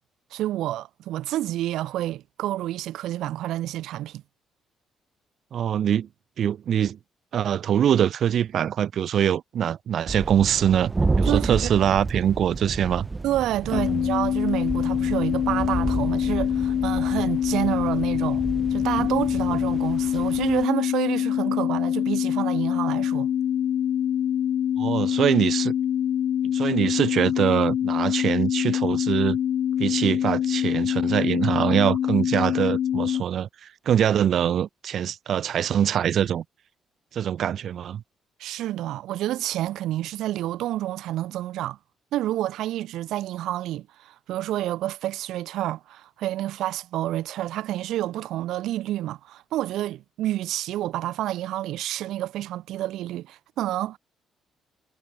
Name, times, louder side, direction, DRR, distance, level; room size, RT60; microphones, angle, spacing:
voice 1, 0.3-4.2 11.3-11.7 13.2-18.4 18.7-23.3 38.4-41.8 42.1-54.0, right 14 dB, 85° right, 1.2 m, -29 dB
voice 2, 5.5-6.1 6.4-7.0 7.3-13.1 13.7-13.8 24.8-25.7 26.5-29.4 29.8-36.4 37.1-38.0, right 9 dB, 55° right, 1.3 m, -23 dB
sound 1, 10.1-20.6, right 3 dB, 20° right, 0.9 m, -31 dB
sound 2, 13.7-33.2, left 10 dB, 55° left, 0.6 m, -25 dB
cardioid pair, 150°, 0 cm